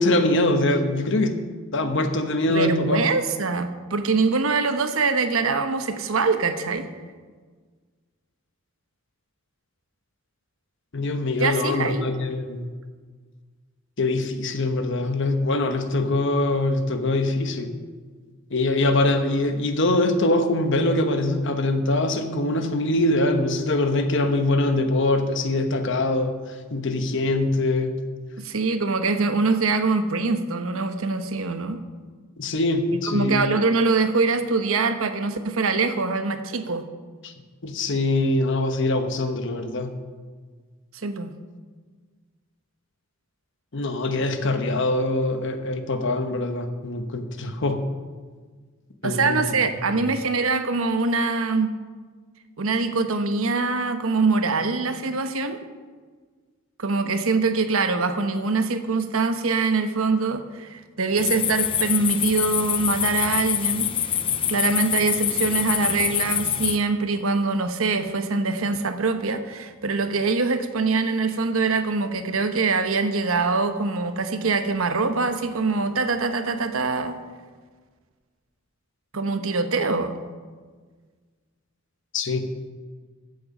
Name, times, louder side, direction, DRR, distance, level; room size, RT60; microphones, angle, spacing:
voice 1, 0.0-1.4 1.7-3.0 10.9-12.7 14.0-17.8 18.5-28.0 32.4-33.4 37.2-37.3 37.6-39.9 43.7-47.8 49.0-49.4 82.1-82.5, left 2 dB, 60° left, 7 dB, 1.1 m, -23 dB
voice 2, 2.5-6.8 11.4-12.1 28.4-31.8 33.1-36.8 41.0-41.3 49.0-51.7 52.6-55.6 56.8-63.9 64.5-77.2 79.1-80.1, right 4 dB, 75° right, 8 dB, 1.0 m, -23 dB
sound 1, 61.2-66.8, left 9 dB, 25° left, 0.4 m, -25 dB
14.5 x 7.8 x 5.4 m, 1.5 s
head